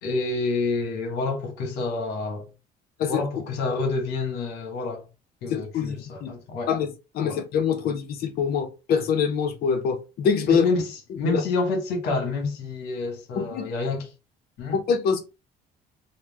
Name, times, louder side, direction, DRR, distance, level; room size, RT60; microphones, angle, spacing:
voice 1, 0.0-2.5 3.0-5.1 5.4-6.7 7.2-7.4 10.5-10.9 11.2-14.1 14.6-14.8, left 3 dB, 85° left, 1.2 m, -28 dB
voice 2, 5.5-6.3 6.7-10.6 11.3-11.4 13.4-13.7 14.7-15.2, left 6 dB, 65° left, 0.7 m, -25 dB
3.0 x 2.1 x 3.2 m
cardioid pair, 110°, 17 cm